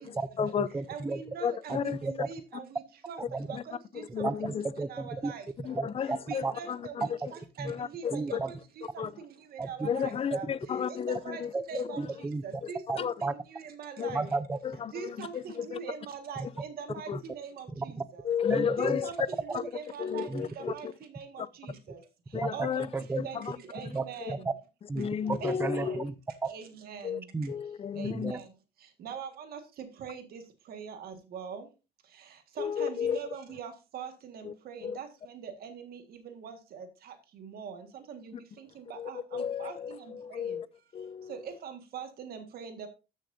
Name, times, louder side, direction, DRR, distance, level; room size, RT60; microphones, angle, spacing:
voice 1, 0.1-1.2 1.7-2.3 3.3-3.5 4.2-5.3 5.7-6.2 6.4-6.5 7.2-7.3 7.6-7.7 8.1-8.5 9.6-9.9 10.3-10.4 11.5-11.6 12.0-12.4 12.9-13.3 14.1-14.6 17.1-17.2 17.8-17.9 18.5-19.0 19.5-19.6 20.3-20.4 22.3-22.7 22.9-23.3 23.9-24.0 24.3-24.4 24.9-26.1 26.4-26.5 27.3-27.5 28.1-28.4, right 3 dB, 15° right, 0.6 m, -33 dB
voice 2, 0.9-3.2 3.5-4.6 4.9-5.4 5.7-5.8 6.3-8.6 8.9-10.5 10.9-11.4 11.7-12.0 12.4-14.3 14.9-18.2 18.8-22.0 22.5-22.9 23.2-23.4 23.7-24.5 25.4-26.0 26.5-27.2 28.0-28.4 29.0-30.4 30.7-31.6 32.6-40.5 41.3-42.9, right 7 dB, 65° right, 1.8 m, -43 dB
voice 3, 1.4-2.0 3.5-3.6 3.9-4.6 5.7-7.0 7.7-8.4 9.0-9.1 9.8-12.0 12.6-12.7 13.0-13.1 14.0-14.1 14.6-15.8 17.1-17.2 18.3-19.1 20.0-20.9 21.4-21.5 22.3-22.9 23.3-23.6 25.0-26.0 27.0-27.2 27.5-28.3 32.6-33.2 34.4-34.5 34.8-35.0 39.0-40.7 40.9-41.3, left 7 dB, 35° left, 0.5 m, -33 dB
13.5 x 6.4 x 2.7 m
cardioid pair, 110°, 17 cm